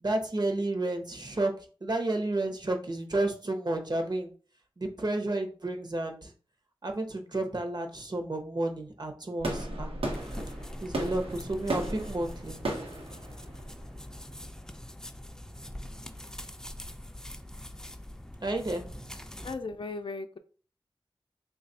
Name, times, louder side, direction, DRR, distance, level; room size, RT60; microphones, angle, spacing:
voice 1, 0.0-1.5 1.8-4.3 4.8-6.3 6.8-9.9 10.8-12.6 15.8-15.9 18.4-19.0, right 2 dB, 50° right, 5 dB, 0.8 m, -31 dB
sound 1, 9.4-14.3, right 1 dB, 85° right, 0.9 m, -35 dB
sound 2, 10.1-19.6, left 1 dB, 5° left, 0.4 m, -44 dB
voice 2, 19.4-20.4, left 3 dB, 65° left, 8 dB, 0.4 m, -36 dB
3.2 x 2.4 x 4.0 m, 0.39 s
wide cardioid pair, 50°, 9 cm